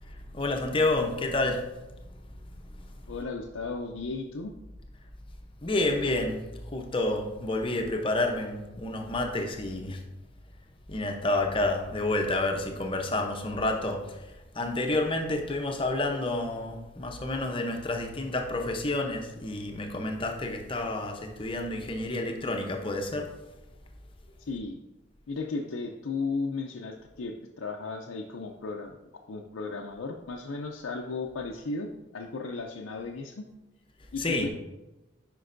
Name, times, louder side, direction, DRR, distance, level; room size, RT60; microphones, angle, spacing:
voice 1, 0.3-1.6 5.6-6.4 6.7-10.0 10.9-14.2 14.5-23.3 34.2-34.5, left 2 dB, 25° left, 3 dB, 0.7 m, -29 dB
voice 2, 3.1-4.5 24.5-24.8 25.3-29.0 29.3-33.5 34.1-34.5, left 3 dB, 90° left, 0 dB, 0.5 m, -35 dB
9.4 x 5.2 x 2.6 m, 1.0 s
head